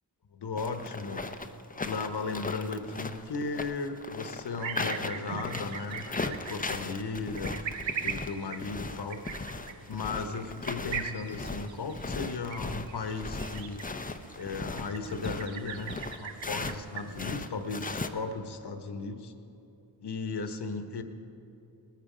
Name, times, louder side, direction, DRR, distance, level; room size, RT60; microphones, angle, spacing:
voice 1, 0.3-1.2 1.8-7.6 8.0-9.5 9.9-13.8 14.4-19.3 20.0-21.0, left 4 dB, 60° left, 7 dB, 1.1 m, -36 dB
sound 1, 0.6-16.8 17.1-18.1, left 3 dB, 20° left, 0.6 m, -37 dB
sound 2, 4.6-17.2, right 7 dB, 90° right, 0.8 m, -41 dB
19.5 x 9.3 x 5.0 m, 2.8 s
cardioid pair, 60°, 44 cm